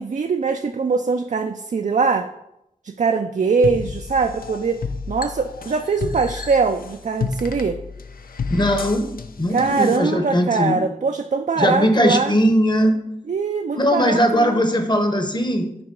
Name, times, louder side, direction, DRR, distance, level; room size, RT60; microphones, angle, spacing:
voice 1, 0.0-2.3 2.8-4.8 5.1-7.8 9.5-12.3 13.3-14.6, right 4 dB, 55° right, 7 dB, 0.4 m, -22 dB
sound 1, 3.6-10.0, left 4 dB, 85° left, 0.5 m, -31 dB
voice 2, 8.5-9.1 9.4-10.8 11.6-12.9 13.8-15.7, equal, 30° left, 6 dB, 0.9 m, -19 dB
5.8 x 3.5 x 5.3 m, 0.83 s
cardioid pair, 45°, 15 cm